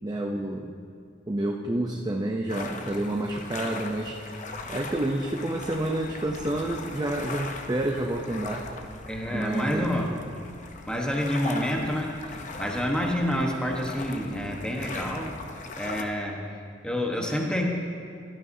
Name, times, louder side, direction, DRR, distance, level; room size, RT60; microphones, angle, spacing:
voice 1, 0.0-0.7 1.3-4.3 4.7-8.6 9.3-9.9, right 1 dB, 20° right, 1 dB, 0.6 m, -29 dB
sound 1, 2.5-16.0, left 3 dB, 45° left, 0.8 m, -39 dB
voice 2, 9.1-10.1 10.9-15.4 15.8-16.5 16.8-17.7, equal, 5° left, 0 dB, 1.1 m, -28 dB
18.0 x 12.5 x 2.7 m, 2.4 s
head